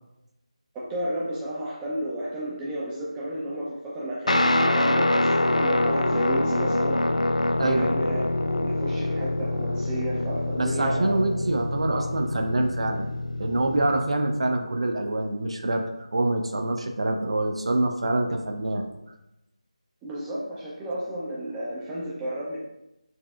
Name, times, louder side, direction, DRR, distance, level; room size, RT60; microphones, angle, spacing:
voice 1, 0.7-7.0 7.6-11.2 11.9-12.0 20.0-22.6, right 1 dB, 10° right, -6 dB, 0.6 m, -32 dB
Guitar, 4.3-14.0, left 1 dB, 75° left, 0.3 m, -25 dB
voice 2, 10.5-13.1 13.4-15.8 16.1-18.8, right 2 dB, 55° right, 4 dB, 0.5 m, -25 dB
4.1 x 3.4 x 2.3 m, 0.90 s
figure-of-eight pair, 165°, 4 cm